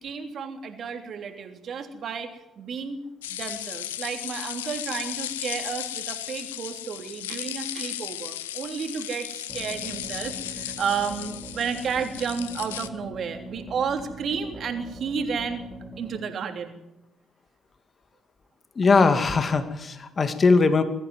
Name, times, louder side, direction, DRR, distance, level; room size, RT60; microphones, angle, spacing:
voice 1, 0.0-3.0 3.3-15.6 16.0-16.8, right 6 dB, 55° right, 5 dB, 3.2 m, -32 dB
sound 1, 3.2-12.9, left 12 dB, 85° left, 0.8 m, -35 dB
sound 2, 9.5-16.2, right 1 dB, 15° right, 5.0 m, -42 dB
voice 2, 18.8-20.8, left 4 dB, 40° left, 8 dB, 2.5 m, -20 dB
22.0 x 14.5 x 9.5 m, 0.90 s
hypercardioid pair, 45°, 0 cm